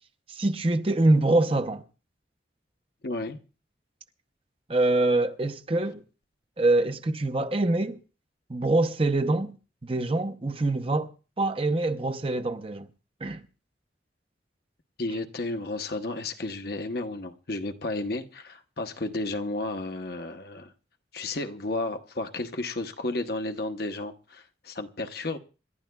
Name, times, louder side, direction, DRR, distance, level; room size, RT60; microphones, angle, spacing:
voice 1, 0.3-1.8 4.7-6.0 6.6-8.0 8.5-9.5 9.8-11.1 11.4-12.9 13.2-13.4, right 2 dB, 30° right, 0.7 m, -24 dB
voice 2, 3.0-3.4 15.0-20.7 21.1-25.4, left 2 dB, 55° left, 0.9 m, -32 dB
27.5 x 12.0 x 2.3 m
head